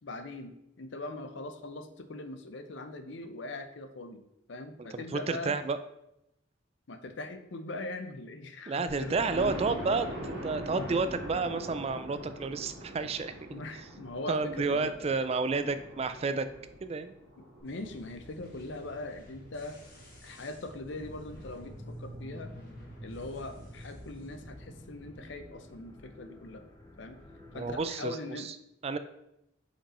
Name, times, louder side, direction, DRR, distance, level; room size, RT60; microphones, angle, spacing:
voice 1, 0.0-4.2 4.5-5.6 6.9-9.2 13.5-15.0 17.6-19.8 20.2-22.5 23.0-26.7 27.0-27.2 27.5-28.5, left 2 dB, 65° left, 9 dB, 0.6 m, -41 dB
voice 2, 4.9-5.8 8.7-13.6 14.3-16.5 16.8-17.1 27.5-28.5 28.8-29.0, right 4 dB, 30° right, 11 dB, 0.3 m, -31 dB
Thunder, 8.9-18.6 19.2-19.3 19.7-19.8 20.0-20.1, equal, 80° right, 2.1 m, -42 dB
sound 1, 17.6-25.2, equal, 45° left, 1.8 m, -52 dB
sound 2, 20.9-27.9, equal, 15° left, 0.7 m, -48 dB
5.3 x 5.2 x 4.2 m, 0.84 s
head